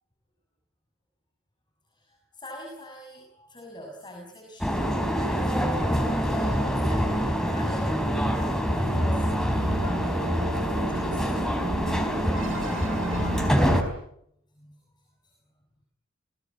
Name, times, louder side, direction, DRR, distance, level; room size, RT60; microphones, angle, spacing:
voice 1, 1.9-11.4 11.9-12.3 14.6-14.8 15.2-15.3, equal, 25° left, 0 dB, 7.1 m, -43 dB
sound 1, 4.6-13.8, equal, 5° left, 4.4 m, -25 dB
sound 2, 8.8-13.8, right 1 dB, 70° right, 2.8 m, -34 dB
29.5 x 20.5 x 8.5 m, 0.74 s
head